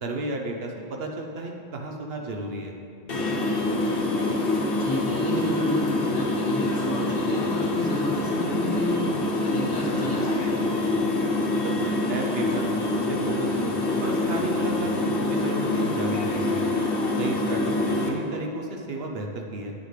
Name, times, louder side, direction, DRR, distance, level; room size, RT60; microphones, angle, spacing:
voice 1, 0.0-2.7 11.6-13.7 14.0-16.7 17.2-19.7, right 2 dB, 65° right, 2 dB, 1.0 m, -33 dB
sound 1, 3.1-18.1, left 2 dB, 60° left, 1.1 m, -25 dB
voice 2, 4.8-10.6, equal, 20° left, -4 dB, 1.2 m, -32 dB
9.5 x 7.3 x 3.3 m, 2.5 s
omnidirectional pair, 1.1 m